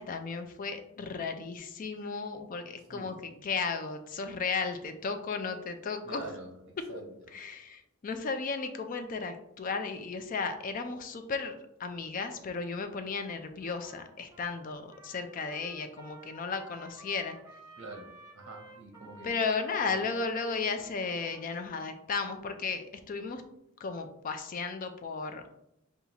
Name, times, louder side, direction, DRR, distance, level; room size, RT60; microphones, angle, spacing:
voice 1, 0.0-6.2 7.3-17.4 19.2-23.4 23.8-25.6, left 4 dB, 40° left, 7 dB, 0.4 m, -35 dB
voice 2, 2.9-3.4 6.0-7.4 17.8-19.4 19.8-20.1, right 2 dB, 55° right, 1 dB, 0.7 m, -46 dB
Trumpet, 13.6-21.9, right 2 dB, 15° right, 0.7 m, -54 dB
5.4 x 2.4 x 2.8 m, 0.81 s
head